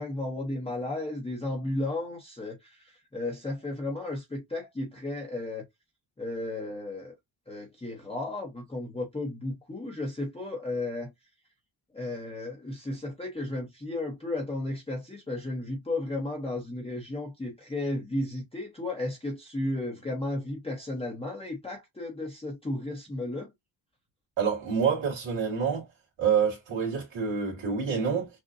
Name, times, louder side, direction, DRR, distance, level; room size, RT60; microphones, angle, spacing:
voice 1, 0.0-5.6 6.2-7.1 7.5-11.1 11.9-23.5, left 2 dB, 15° left, 0.8 m, -34 dB
voice 2, 24.4-25.9 26.2-28.3, right 6 dB, 70° right, 2.1 m, -27 dB
6.2 x 2.1 x 2.6 m
wide cardioid pair, 165°, 46 cm